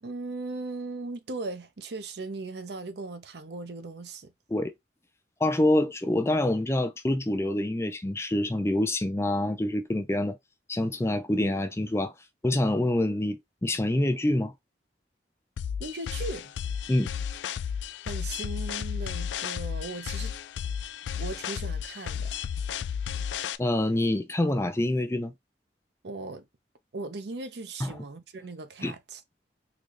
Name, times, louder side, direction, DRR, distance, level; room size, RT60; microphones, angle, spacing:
voice 1, 0.0-4.3 15.8-16.5 18.0-20.3 21.2-22.3 26.0-26.4 26.9-29.2, right 3 dB, 65° right, 0.6 m, -38 dB
voice 2, 5.4-10.4 10.7-12.1 12.4-14.5 16.9-17.1 23.6-25.3 27.8-27.9 28.8-28.9, left 1 dB, 15° left, 0.4 m, -26 dB
sound 1, 15.6-23.6, left 8 dB, 85° left, 0.3 m, -33 dB
3.9 x 2.3 x 3.1 m
head